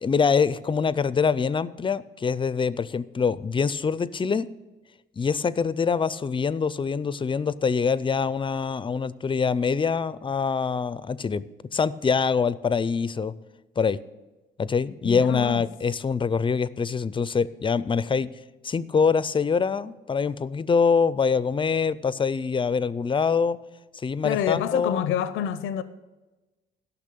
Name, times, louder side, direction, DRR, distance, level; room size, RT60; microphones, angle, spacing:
voice 1, 0.0-4.5 5.2-11.4 11.7-13.3 13.8-14.0 14.6-18.3 18.6-23.6 23.9-25.1, left 5 dB, 25° left, 0.4 m, -24 dB
voice 2, 15.0-15.7 24.2-25.8, left 9 dB, 90° left, 0.6 m, -27 dB
12.5 x 5.9 x 6.8 m
cardioid pair, 90°, 20 cm